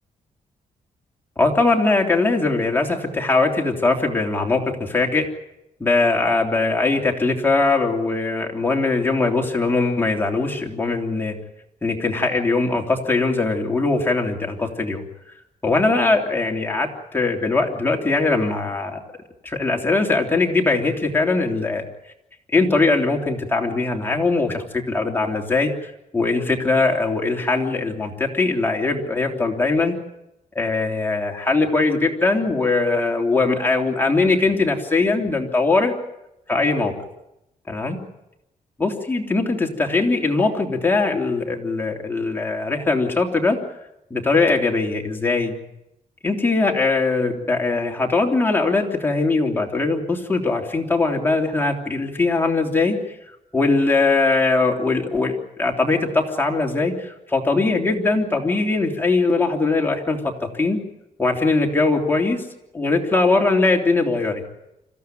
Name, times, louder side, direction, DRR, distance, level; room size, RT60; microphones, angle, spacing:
voice 1, 1.4-5.3 5.8-11.4 11.8-15.0 15.6-19.0 19.4-21.8 22.5-29.9 30.5-35.9 36.5-36.9 37.7-38.0 38.8-43.6 44.1-45.5 46.2-53.0 53.5-55.3 55.6-60.8 61.2-62.4 62.7-64.4, left 3 dB, 15° left, 1 dB, 3.2 m, -21 dB
26.0 x 15.5 x 9.3 m, 0.89 s
cardioid pair, 120°, 14 cm